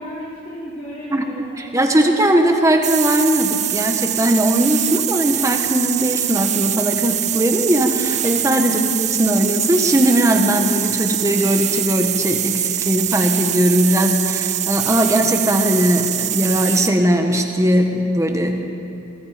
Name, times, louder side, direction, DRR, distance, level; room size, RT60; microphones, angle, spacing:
voice 1, 0.0-2.2, equal, 30° left, -9 dB, 3.7 m, -35 dB
voice 2, 1.6-18.6, equal, 15° right, 4 dB, 1.4 m, -19 dB
sound 1, 2.8-17.0, right 12 dB, 35° right, 0.5 m, -23 dB
24.0 x 22.0 x 5.2 m, 2.7 s
head